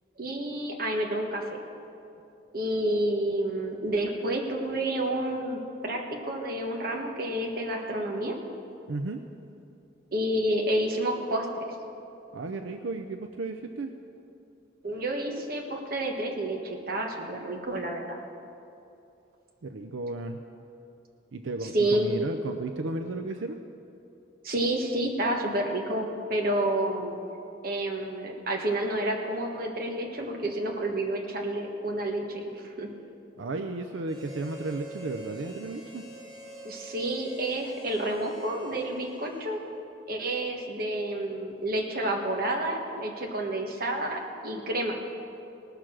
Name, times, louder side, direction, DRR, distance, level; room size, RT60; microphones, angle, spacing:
voice 1, 0.2-1.6 2.5-8.3 10.1-11.6 14.8-18.2 21.6-22.1 24.4-27.2 27.6-32.9 36.6-39.6 40.1-45.0, right 1 dB, 50° right, 1 dB, 1.5 m, -29 dB
voice 2, 8.9-9.2 12.3-13.9 19.6-20.4 21.3-23.6 33.4-36.0, right 2 dB, 85° right, 6 dB, 0.5 m, -34 dB
Harmonica, 34.0-39.8, right 2 dB, 25° right, 1.9 m, -46 dB
18.5 x 6.8 x 6.1 m, 2.7 s
head